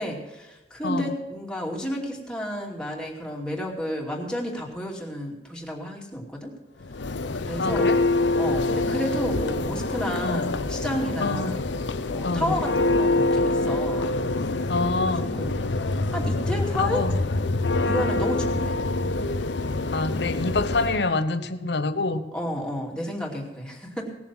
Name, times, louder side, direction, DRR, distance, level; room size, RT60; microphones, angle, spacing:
voice 1, 0.0-6.5 7.4-7.9 8.4-11.6 12.1-14.1 15.3-15.6 16.1-17.0 17.8-18.8 22.3-24.2, equal, 5° left, -1 dB, 2.6 m, -31 dB
voice 2, 0.8-1.1 7.6-8.0 10.2-10.5 11.2-11.5 12.2-12.6 14.7-15.3 16.7-17.1 19.9-22.2, left 3 dB, 70° left, 10 dB, 1.0 m, -26 dB
Church bell, 6.8-21.1, left 2 dB, 85° left, 0.8 m, -26 dB
18.5 x 7.1 x 6.1 m, 1.1 s
head